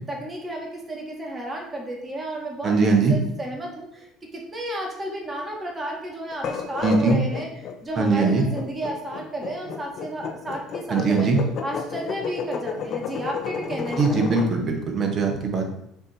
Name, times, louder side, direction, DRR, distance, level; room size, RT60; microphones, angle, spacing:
voice 1, 0.1-7.5 7.8-11.3 11.6-14.3, right 1 dB, 25° right, -1 dB, 1.9 m, -33 dB
voice 2, 2.6-3.2 6.8-7.2 8.0-8.4 10.9-11.4 14.0-15.7, right 4 dB, 45° right, 3 dB, 1.4 m, -21 dB
sound 1, 6.3-14.5, left 6 dB, 55° left, 0.8 m, -31 dB
7.0 x 3.2 x 4.4 m, 0.78 s
hypercardioid pair, 65°, 0 cm